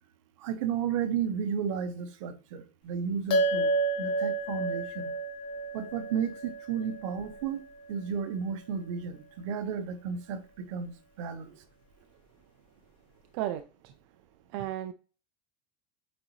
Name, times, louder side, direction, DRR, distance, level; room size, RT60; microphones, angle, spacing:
voice 1, 0.4-5.1 5.7-7.6 7.9-11.5, right 7 dB, 60° right, 1.0 m, -33 dB
sound 1, 3.3-8.0, right 2 dB, 30° left, 0.9 m, -31 dB
voice 2, 13.3-13.6 14.5-14.9, right 12 dB, 45° right, 0.4 m, -32 dB
8.5 x 3.9 x 3.1 m
supercardioid pair, 180°, 18 cm